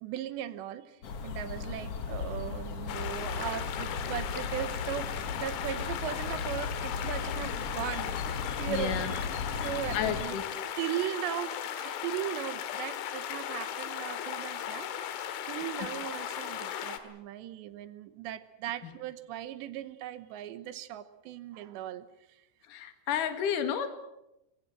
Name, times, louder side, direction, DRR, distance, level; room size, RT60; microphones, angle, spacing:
voice 1, 0.0-9.1 9.6-10.4 10.8-14.9 15.5-22.4, right 12 dB, 75° right, 13 dB, 3.1 m, -38 dB
sound 1, 1.0-10.3, left 5 dB, 70° left, 1.4 m, -37 dB
sound 2, 2.9-17.0, left 10 dB, 90° left, 4.0 m, -37 dB
voice 2, 8.7-9.1 9.9-10.4 22.7-23.9, left 8 dB, 55° left, 8 dB, 3.0 m, -31 dB
23.0 x 23.0 x 7.4 m, 0.89 s
omnidirectional pair, 5.3 m